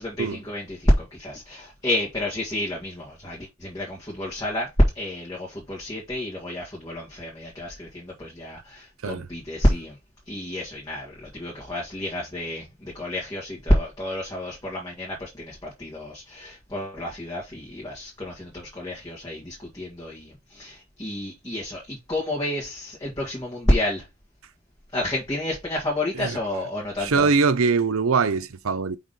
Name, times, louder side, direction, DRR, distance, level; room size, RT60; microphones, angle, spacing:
voice 1, 0.0-4.7 4.9-9.9 10.3-24.0 24.9-27.3, left 1 dB, 20° left, 1.9 m, -29 dB
voice 2, 27.0-29.0, right 4 dB, 80° right, 0.7 m, -22 dB
5.9 x 3.6 x 5.4 m
head